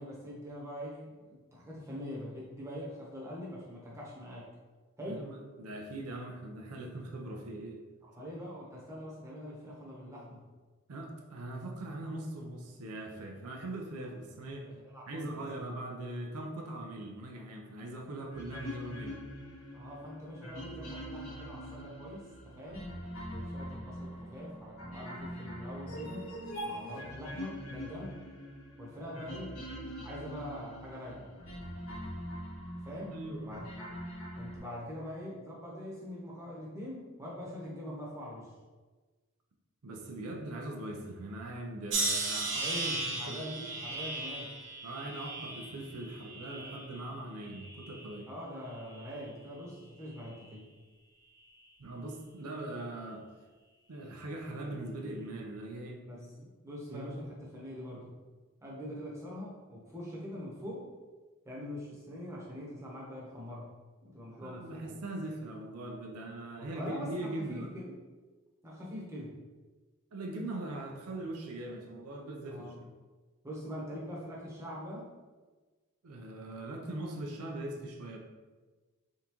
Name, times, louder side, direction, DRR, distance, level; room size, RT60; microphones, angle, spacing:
voice 1, 0.0-4.5 5.0-5.3 8.0-10.4 14.7-15.4 19.7-23.0 23.3-26.3 26.6-28.2 28.8-29.6 30.0-31.3 32.8-33.2 33.5-33.7 34.4-38.5 42.6-44.5 48.3-50.7 56.0-56.3 56.6-58.1 58.6-60.9 61.4-63.7 64.0-65.0 66.6-68.0 68.6-69.3 72.5-72.8 73.4-75.1, equal, 15° right, -6 dB, 0.9 m, -43 dB
voice 2, 5.0-7.8 10.9-14.7 15.1-19.2 33.1-33.6 39.8-42.7 43.1-43.4 44.8-48.3 51.8-53.2 53.9-56.5 56.9-57.1 64.4-67.7 70.1-72.6 76.0-78.2, right 1 dB, 90° right, 1 dB, 0.6 m, -41 dB
sound 1, 18.3-34.6, equal, 75° left, 1.4 m, -43 dB
sound 2, 41.9-47.1 47.5-48.2 48.9-49.2, right 2 dB, 55° right, 0.8 m, -36 dB
3.7 x 3.5 x 3.0 m, 1.3 s
head